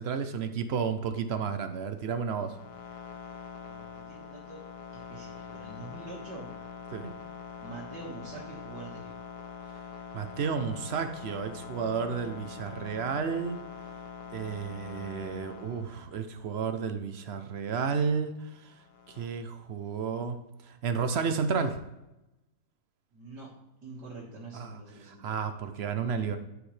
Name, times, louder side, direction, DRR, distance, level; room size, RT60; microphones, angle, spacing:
voice 1, 0.0-2.6 6.9-7.1 10.1-13.6 14.3-18.7 19.1-21.8 24.5-26.4, right 6 dB, 60° right, 9 dB, 0.7 m, -32 dB
sound 1, 2.3-16.4 18.6-19.3, left 7 dB, 80° left, 1.5 m, -44 dB
voice 2, 3.6-4.7 4.9-6.5 7.6-9.1 23.1-23.5 23.8-25.4, right 2 dB, 85° right, -7 dB, 2.4 m, -45 dB
12.0 x 5.0 x 3.3 m, 0.93 s
omnidirectional pair, 1.8 m